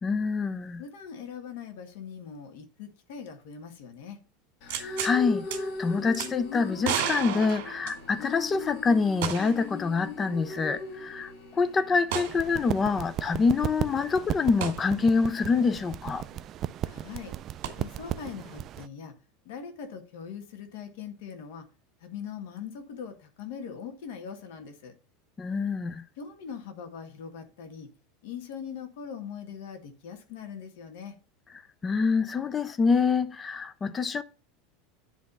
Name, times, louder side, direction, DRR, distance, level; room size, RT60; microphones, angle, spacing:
voice 1, 0.0-0.8 4.8-5.5 5.8-11.3 11.6-16.2 25.4-26.0 31.8-34.2, left 4 dB, 20° left, 0.5 m, -26 dB
voice 2, 0.8-4.2 16.9-17.3 17.8-19.2 19.5-21.7 22.0-24.9 26.2-27.9 28.2-31.1, left 7 dB, 70° left, 1.7 m, -41 dB
sound 1, 4.6-12.8, left 3 dB, 55° left, 1.8 m, -39 dB
sound 2, 4.7-5.2 5.5-5.6 6.1-6.3 6.8-8.3 9.2-9.7 10.0-10.1 12.1-12.4 14.6-14.8 17.6-17.7, right 9 dB, 70° right, 1.9 m, -32 dB
sound 3, 12.1-18.9, right 11 dB, 30° right, 0.3 m, -36 dB
9.7 x 3.5 x 5.5 m
supercardioid pair, 160°, 0 cm